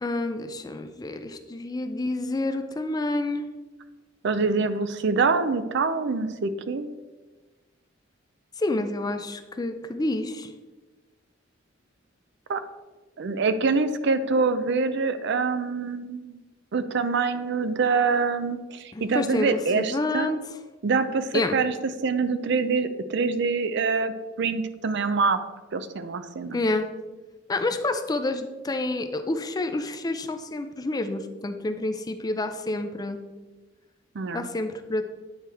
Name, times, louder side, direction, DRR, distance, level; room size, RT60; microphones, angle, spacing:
voice 1, 0.0-3.5 8.6-10.5 18.9-20.4 21.3-21.6 26.5-26.9 27.5-33.2 34.3-35.0, left 2 dB, 20° left, 8 dB, 0.4 m, -28 dB
voice 2, 4.2-6.9 12.5-12.6 13.2-16.4 16.7-20.3 20.8-21.7 22.0-24.1 24.4-25.4 25.7-26.6 34.1-34.5, right 4 dB, 60° right, 11 dB, 0.5 m, -25 dB
9.4 x 4.5 x 3.4 m, 1.2 s
head